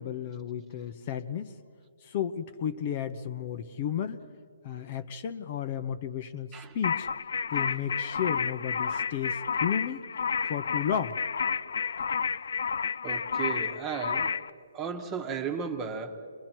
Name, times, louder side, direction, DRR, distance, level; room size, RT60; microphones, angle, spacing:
voice 1, 0.0-1.5 2.0-4.3 4.6-7.1 7.5-10.0 10.5-11.2, left 8 dB, 35° left, 9 dB, 0.8 m, -33 dB
sound 1, 6.8-14.5, left 6 dB, 65° left, 0.5 m, -31 dB
voice 2, 13.0-14.3 14.7-16.2, right 6 dB, 20° right, 6 dB, 1.3 m, -35 dB
29.5 x 22.0 x 4.5 m, 2.4 s
hypercardioid pair, 150°, 0 cm